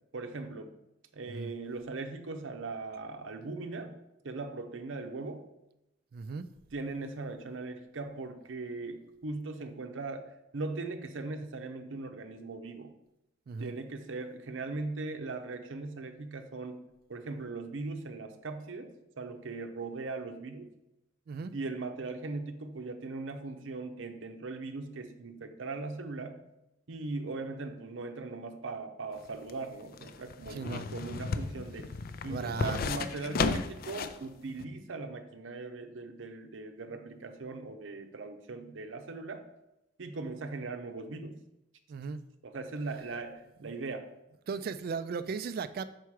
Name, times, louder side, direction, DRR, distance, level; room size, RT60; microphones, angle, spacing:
voice 1, 0.1-0.7 1.1-4.0 4.2-5.5 6.7-12.9 13.6-20.7 21.5-26.4 26.9-30.6 30.9-31.9 32.2-39.5 40.0-41.4 42.4-44.1, right 3 dB, 90° right, 6 dB, 0.7 m, -39 dB
voice 2, 6.1-6.5 13.5-13.7 21.3-21.5 30.5-30.9 32.3-32.9 41.9-42.2 43.6-43.7 44.5-45.8, right 5 dB, 55° right, 12 dB, 0.3 m, -36 dB
sound 1, 29.1-34.2 34.6-34.7, left 4 dB, 50° left, 0.4 m, -34 dB
5.8 x 4.5 x 4.7 m, 0.90 s
head